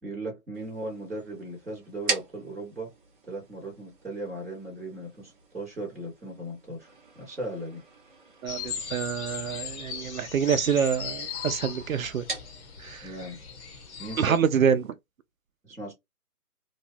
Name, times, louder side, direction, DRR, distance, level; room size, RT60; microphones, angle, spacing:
voice 1, 0.0-2.9 3.3-7.8 13.0-13.4 14.0-14.3 15.6-15.9, right 1 dB, ahead, 0.7 m, -37 dB
sound 1, 0.5-14.9, right 3 dB, 35° right, 0.9 m, -42 dB
voice 2, 8.4-12.3 12.8-13.1 14.2-14.9, right 7 dB, 65° right, 0.5 m, -26 dB
sound 2, 8.5-14.4, left 6 dB, 45° left, 1.1 m, -38 dB
3.0 x 2.2 x 2.6 m
hypercardioid pair, 165°, 46 cm